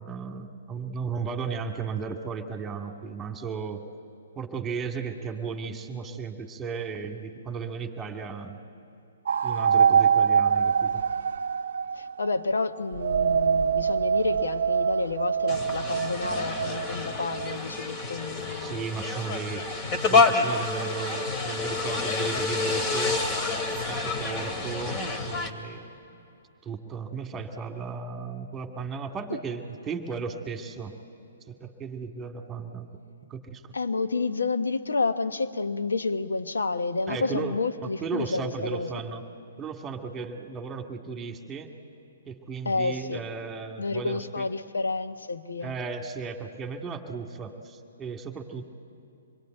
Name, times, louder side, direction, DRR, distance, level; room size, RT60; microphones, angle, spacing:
voice 1, 0.0-3.8 4.4-8.6 9.4-11.0 18.6-19.6 20.1-23.2 23.7-25.0 25.3-25.9 26.6-30.9 31.5-32.9 33.3-33.6 37.1-39.2 39.6-41.7 42.3-44.5 45.6-48.7, right 5 dB, 15° right, 5 dB, 2.1 m, -35 dB
sound 1, 9.3-12.4 12.9-17.6, right 7 dB, 65° right, 0.6 m, -24 dB
voice 2, 12.0-18.8 33.7-38.9 42.6-43.2 43.8-45.7, left 3 dB, 80° left, 10 dB, 1.1 m, -30 dB
sound 2, 15.5-25.5, left 4 dB, 30° left, 2.4 m, -28 dB
26.0 x 22.0 x 9.2 m, 2.7 s
figure-of-eight pair, 125°, 0 cm